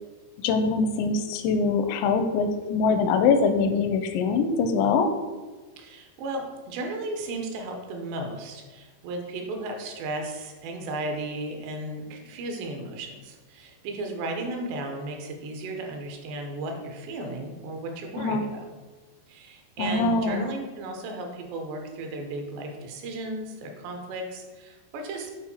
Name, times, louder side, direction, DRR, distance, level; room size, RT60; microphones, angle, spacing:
voice 1, 0.4-5.1 18.2-18.4 19.8-20.5, left 4 dB, 85° left, 7 dB, 2.8 m, -23 dB
voice 2, 5.8-18.7 19.3-25.3, right 2 dB, 80° right, 3 dB, 3.0 m, -35 dB
8.8 x 4.6 x 4.3 m, 1.3 s
omnidirectional pair, 5.1 m